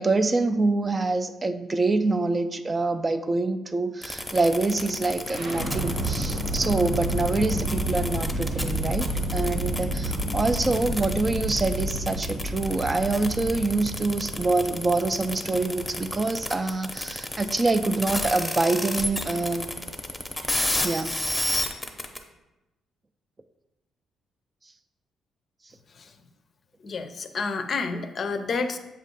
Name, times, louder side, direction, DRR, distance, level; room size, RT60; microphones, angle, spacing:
voice 1, 0.0-19.7 20.8-21.2, right 3 dB, 25° right, 9 dB, 0.4 m, -25 dB
sound 1, 4.0-22.2, left 1 dB, 10° left, 0.7 m, -31 dB
sound 2, 5.3-17.2, right 1 dB, 80° right, 1.1 m, -31 dB
voice 2, 26.8-28.8, left 4 dB, 50° left, 8 dB, 0.5 m, -29 dB
7.3 x 2.5 x 5.3 m, 1.0 s
cardioid pair, 90°, 0 cm